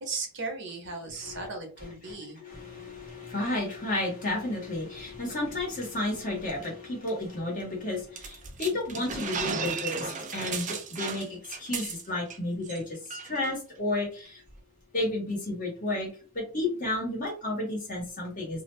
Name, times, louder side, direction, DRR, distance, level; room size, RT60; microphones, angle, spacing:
voice 1, 0.0-2.4, right 3 dB, 55° right, 3 dB, 0.8 m, -36 dB
voice 2, 1.8-14.4 14.9-18.6, left 2 dB, 40° left, -1 dB, 1.3 m, -32 dB
sound 1, 8.2-12.4 12.6-12.8 13.1-13.5, right 5 dB, 35° right, 0.4 m, -35 dB
2.6 x 2.2 x 3.1 m, 0.38 s
head